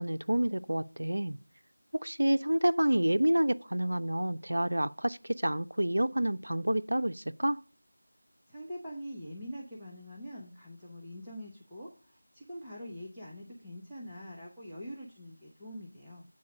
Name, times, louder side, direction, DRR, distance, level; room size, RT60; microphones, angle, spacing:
voice 1, 0.0-1.4 1.9-7.6, right 1 dB, 70° right, 0.4 m, -28 dB
voice 2, 8.5-16.2, equal, ahead, 0.9 m, -44 dB
8.5 x 4.1 x 6.2 m
figure-of-eight pair, 170°, 0 cm